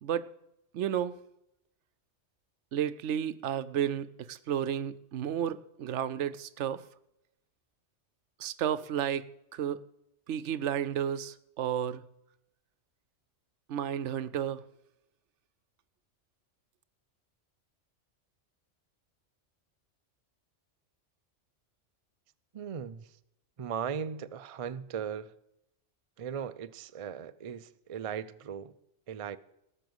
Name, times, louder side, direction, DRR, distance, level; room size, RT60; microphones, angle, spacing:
voice 1, 0.7-1.2 2.7-6.8 8.4-9.2 9.5-9.8 10.3-12.0 13.7-14.6, right 9 dB, 75° right, 1.0 m, -32 dB
voice 2, 22.5-23.2 23.6-25.3 26.2-28.7 29.1-29.4, right 7 dB, 55° right, 0.3 m, -38 dB
18.0 x 6.6 x 7.9 m
omnidirectional pair, 1.2 m